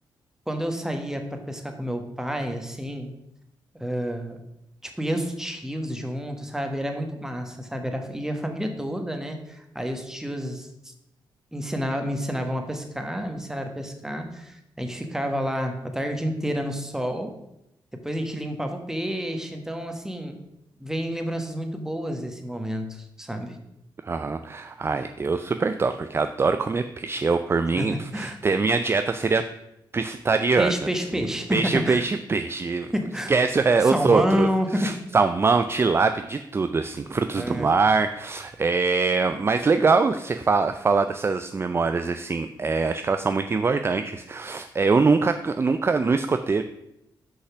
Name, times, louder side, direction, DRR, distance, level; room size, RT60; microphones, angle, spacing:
voice 1, 0.5-3.1 3.7-4.4 4.8-10.9 11.5-17.3 17.9-20.4 20.8-23.6 27.8-28.4 30.6-32.0 32.9-33.3 33.8-34.9 37.3-37.7, equal, 5° right, 5 dB, 1.3 m, -29 dB
voice 2, 24.0-29.5 29.9-30.7 31.1-32.9 33.3-46.6, right 4 dB, 30° right, 9 dB, 0.4 m, -23 dB
6.7 x 5.5 x 6.1 m, 0.84 s
cardioid pair, 85°, 8 cm